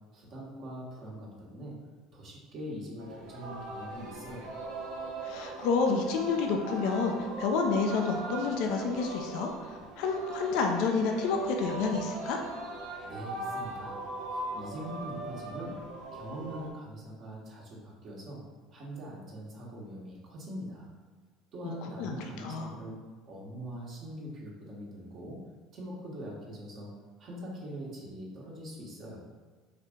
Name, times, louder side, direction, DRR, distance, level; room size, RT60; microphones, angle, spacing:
voice 1, 0.0-1.8 2.1-4.5 13.0-14.0 14.3-15.8 16.1-18.4 18.7-20.9 21.5-23.0 23.3-25.4 25.7-26.9 27.2-29.2, equal, 50° right, -4 dB, 1.2 m, -42 dB
Singing, 3.0-16.7, right 2 dB, 75° right, 0.8 m, -39 dB
voice 2, 5.2-12.4 22.0-22.7, left 4 dB, 70° left, 3 dB, 0.5 m, -29 dB
4.5 x 2.5 x 3.5 m, 1.4 s
supercardioid pair, 85°, 0 cm